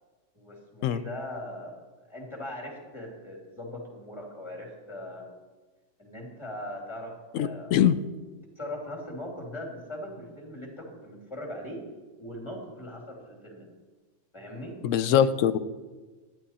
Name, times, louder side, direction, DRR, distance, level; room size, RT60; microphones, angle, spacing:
voice 1, 0.3-5.3 6.0-7.9 8.6-11.8 12.2-13.7 14.3-14.8, left 1 dB, 20° left, 0 dB, 2.4 m, -40 dB
voice 2, 7.3-7.9 14.8-15.6, left 9 dB, 85° left, 14 dB, 0.9 m, -22 dB
11.5 x 9.6 x 4.2 m, 1.3 s
omnidirectional pair, 1.3 m